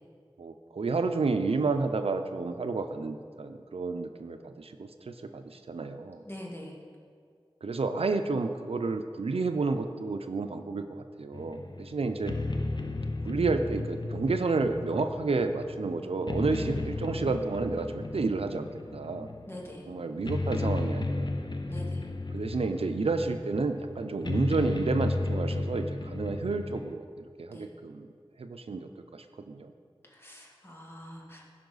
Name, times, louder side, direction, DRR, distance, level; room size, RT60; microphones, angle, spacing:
voice 1, 0.4-6.2 7.6-12.3 13.2-19.3 19.9-21.3 22.3-27.0 27.4-28.1 28.4-29.7, right 3 dB, 90° right, 7 dB, 0.5 m, -30 dB
voice 2, 6.3-6.7 19.5-19.8 21.7-22.0 27.5-27.7 30.1-31.5, left 1 dB, 25° left, -3 dB, 2.2 m, -44 dB
sound 1, 11.3-26.9, left 2 dB, 50° left, 0.7 m, -34 dB
15.0 x 5.7 x 4.0 m, 2.2 s
wide cardioid pair, 45°, 10 cm